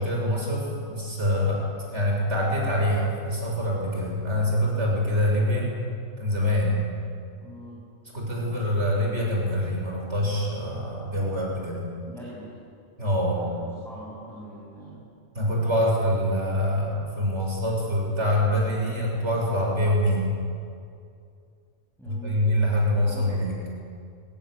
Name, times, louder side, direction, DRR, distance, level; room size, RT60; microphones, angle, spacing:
voice 1, 0.0-5.7 6.2-6.9 8.1-11.9 13.0-13.4 15.3-20.4 22.1-23.6, left 1 dB, 65° right, -3 dB, 7.2 m, -25 dB
voice 2, 7.4-7.8 12.1-12.5 13.4-15.1 22.0-22.5 23.1-23.4, equal, ahead, -7 dB, 6.9 m, -43 dB
23.5 x 18.5 x 9.8 m, 2.4 s
omnidirectional pair, 1.3 m